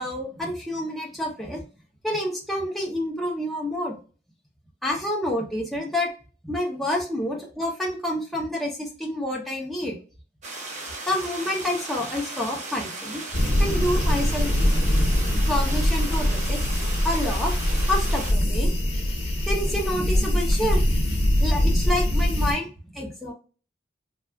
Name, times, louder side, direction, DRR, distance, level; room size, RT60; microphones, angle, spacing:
voice 1, 0.0-1.6 2.0-4.0 4.8-6.1 6.4-10.0 11.1-13.2 13.6-14.5 15.5-16.7 17.0-17.5 17.9-18.7 19.5-23.3, left 1 dB, ahead, -2 dB, 0.6 m, -28 dB
sound 1, 10.4-18.3, right 2 dB, 40° right, 0.7 m, -36 dB
sound 2, 13.3-22.5, left 1 dB, 30° left, 0.8 m, -23 dB
3.4 x 2.3 x 2.2 m, 0.36 s
head